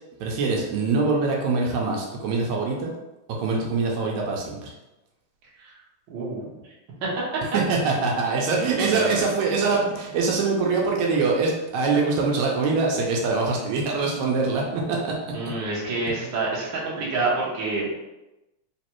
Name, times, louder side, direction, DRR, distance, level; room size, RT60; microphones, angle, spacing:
voice 1, 0.2-2.9 3.4-4.7 7.5-15.1, right 4 dB, 80° right, -1 dB, 1.9 m, -23 dB
voice 2, 6.1-6.4 7.0-7.4 8.9-9.1 15.3-18.0, right 3 dB, 55° right, -5 dB, 1.4 m, -27 dB
4.4 x 3.1 x 3.0 m, 0.99 s
omnidirectional pair, 3.4 m